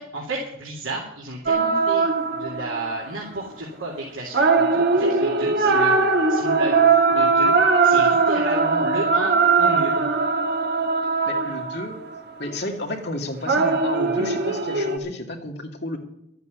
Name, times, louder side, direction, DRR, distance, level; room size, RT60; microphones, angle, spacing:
voice 1, 0.0-2.1 2.3-7.5 7.8-10.0, right 2 dB, 75° right, -4 dB, 2.9 m, -32 dB
sound 1, 1.5-3.1 4.3-12.2 13.5-15.0, right 4 dB, 50° right, 1.4 m, -20 dB
voice 2, 11.2-12.0 12.4-16.0, left 1 dB, 55° left, 1 dB, 2.4 m, -32 dB
12.5 x 8.3 x 9.4 m, 0.77 s
head